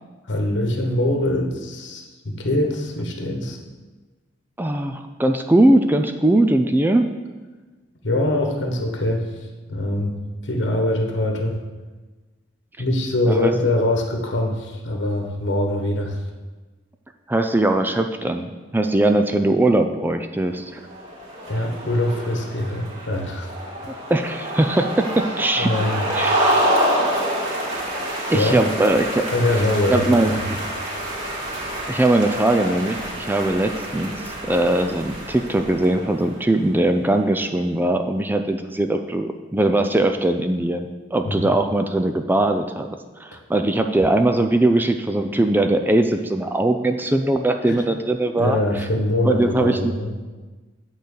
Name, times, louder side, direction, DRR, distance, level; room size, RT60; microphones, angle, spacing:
voice 1, 0.3-3.6 8.0-9.2 9.7-11.6 12.8-16.2 21.5-23.5 25.6-26.0 28.3-28.5 29.3-30.0 30.3-30.4 41.2-41.5 47.7-47.8 48.2-50.1, left 1 dB, 70° left, 2 dB, 1.2 m, -23 dB
voice 2, 4.6-7.1 13.3-13.5 17.3-20.8 24.1-25.7 26.1-26.4 28.3-29.2 29.9-30.4 31.9-34.1 34.5-42.9 43.2-48.9 49.2-49.9, right 1 dB, 10° right, 6 dB, 0.4 m, -20 dB
sound 1, 20.8-36.4, right 1 dB, 35° right, 2.8 m, -27 dB
8.7 x 3.9 x 6.8 m, 1.3 s
head